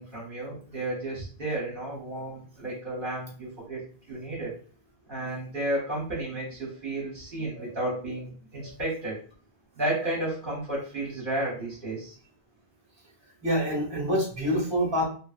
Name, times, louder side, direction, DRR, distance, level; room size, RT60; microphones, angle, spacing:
voice 1, 0.0-4.6 5.1-9.2 9.7-12.2, right 1 dB, 55° right, -5 dB, 1.0 m, -32 dB
voice 2, 13.4-15.0, equal, 25° right, -2 dB, 1.2 m, -27 dB
2.9 x 2.6 x 2.4 m, 0.40 s
omnidirectional pair, 1.1 m